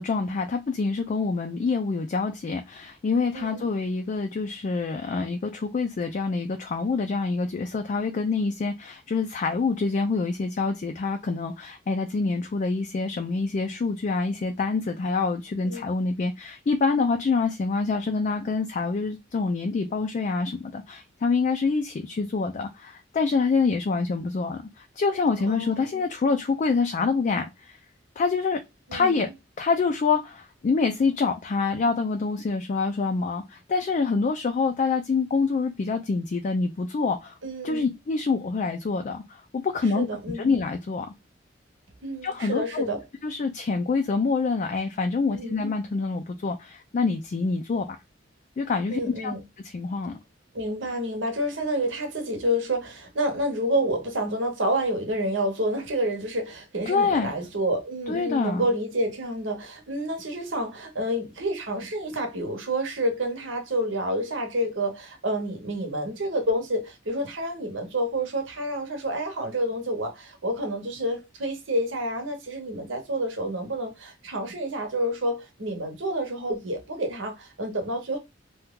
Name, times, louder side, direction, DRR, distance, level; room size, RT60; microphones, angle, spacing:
voice 1, 0.0-27.8 28.2-28.6 28.9-29.3 29.6-37.4 37.6-40.1 40.3-41.1 42.2-42.9 43.2-47.9 48.6-49.3 49.7-50.2 56.9-57.3 58.1-58.7, left 4 dB, 40° left, 0.3 m, -26 dB
voice 2, 3.3-3.7 15.6-15.9 25.5-26.1 28.9-29.2 37.4-37.9 39.9-40.5 42.0-43.0 45.3-45.6 48.9-49.4 50.5-78.2, right 1 dB, 80° right, 1.0 m, -29 dB
2.8 x 2.3 x 3.5 m
head